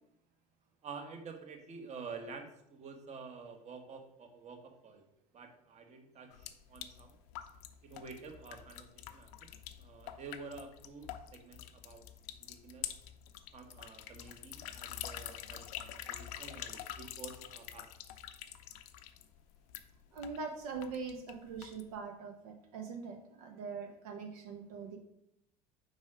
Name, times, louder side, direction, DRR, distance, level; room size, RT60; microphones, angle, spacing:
voice 1, 0.8-5.0 5.3-7.1 7.8-9.5 9.8-12.0 12.4-12.9 13.5-17.9, right 4 dB, 35° right, 5 dB, 1.2 m, -49 dB
sound 1, 6.3-22.0, left 11 dB, 70° left, 0.5 m, -47 dB
voice 2, 20.1-25.0, right 5 dB, 75° right, 3 dB, 0.9 m, -42 dB
5.0 x 4.1 x 4.8 m, 0.78 s
hypercardioid pair, 75°, 19 cm